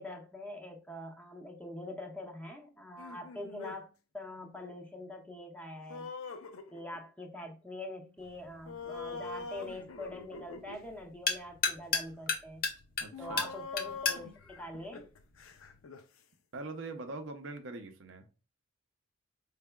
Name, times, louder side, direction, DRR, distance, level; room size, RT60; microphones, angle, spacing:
voice 1, 0.0-6.1 6.7-12.6 13.2-15.1, left 1 dB, 5° left, 0.5 m, -44 dB
sound 1, 3.0-3.8 5.9-7.1 8.7-10.8 12.0-12.1 13.1-16.0, left 4 dB, 80° left, 0.5 m, -44 dB
sound 2, 8.2-15.8, left 4 dB, 45° left, 0.7 m, -37 dB
voice 2, 13.0-13.5 16.5-18.3, right 3 dB, 65° right, 0.6 m, -42 dB
4.6 x 3.3 x 2.2 m
head